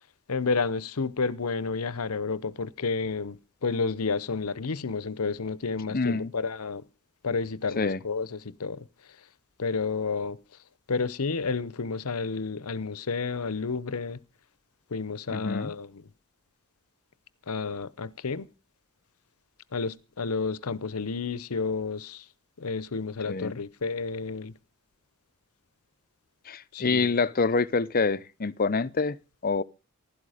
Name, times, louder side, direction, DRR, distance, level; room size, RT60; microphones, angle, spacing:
voice 1, 0.3-6.8 7.2-8.9 9.6-10.4 10.9-14.2 14.9-16.0 17.5-18.5 19.7-22.2 22.6-24.6 26.7-27.2, left 4 dB, 80° left, 0.8 m, -31 dB
voice 2, 5.9-6.3 7.8-8.0 15.3-15.7 23.3-23.6 26.5-29.2 29.4-29.6, left 4 dB, 40° left, 0.6 m, -26 dB
15.5 x 12.0 x 5.0 m
head